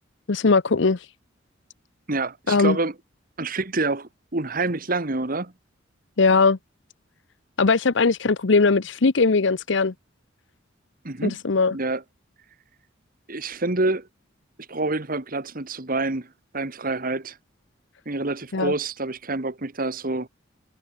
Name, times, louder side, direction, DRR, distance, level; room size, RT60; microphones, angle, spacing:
voice 1, 0.3-1.1 2.5-2.8 6.2-6.6 7.6-9.9 11.2-11.7 18.5-18.7, left 4 dB, 65° left, 0.8 m, -20 dB
voice 2, 2.1-2.9 3.4-5.5 11.0-11.4 11.7-12.0 13.3-14.1 14.7-16.3 16.5-17.4 18.1-20.3, right 2 dB, 45° right, 1.7 m, -27 dB
head